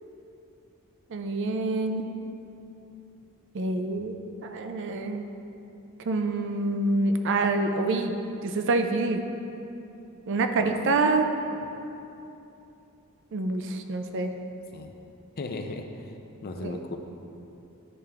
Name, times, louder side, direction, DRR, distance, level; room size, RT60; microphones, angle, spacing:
voice 1, 1.1-2.1 3.5-4.2 4.4-5.3 6.0-8.1 8.4-9.2 10.3-11.3 13.3-14.3 16.6-16.8, right 3 dB, 55° right, 6 dB, 0.4 m, -26 dB
voice 2, 15.4-16.1 16.4-17.0, left 2 dB, 45° left, 5 dB, 0.4 m, -36 dB
10.5 x 3.5 x 3.3 m, 2.8 s
head